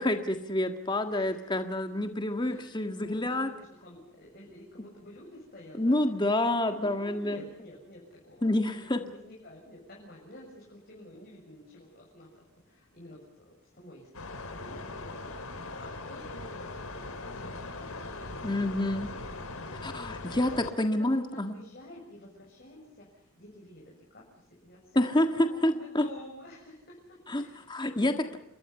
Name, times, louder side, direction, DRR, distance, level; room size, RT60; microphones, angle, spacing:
voice 1, 0.0-3.5 5.8-7.4 8.4-9.0 18.4-19.1 19.8-21.6 24.9-26.0 27.3-28.4, left 1 dB, 20° left, 6 dB, 1.7 m, -28 dB
voice 2, 1.1-1.6 2.4-6.0 6.5-17.1 17.3-18.5 19.0-19.3 19.6-19.7 20.0-24.2 24.6-27.7 28.2-28.4, left 1 dB, 45° left, -3 dB, 7.0 m, -50 dB
sound 1, 14.1-20.7, left 2 dB, 80° left, 3.7 m, -40 dB
28.5 x 22.5 x 5.6 m, 0.79 s
head